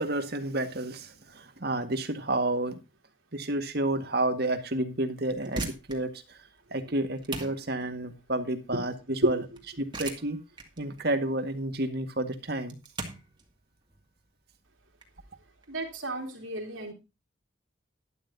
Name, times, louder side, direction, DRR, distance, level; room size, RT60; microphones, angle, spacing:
voice 1, 0.0-2.8 3.3-6.4 6.7-9.4 9.8-10.4 10.8-12.8, right 1 dB, 55° right, 1.9 m, -30 dB
sound 1, 5.4-16.0, right 3 dB, 25° right, 2.3 m, -42 dB
voice 2, 15.7-16.9, right 1 dB, 90° right, 3.4 m, -30 dB
12.0 x 12.0 x 2.8 m
head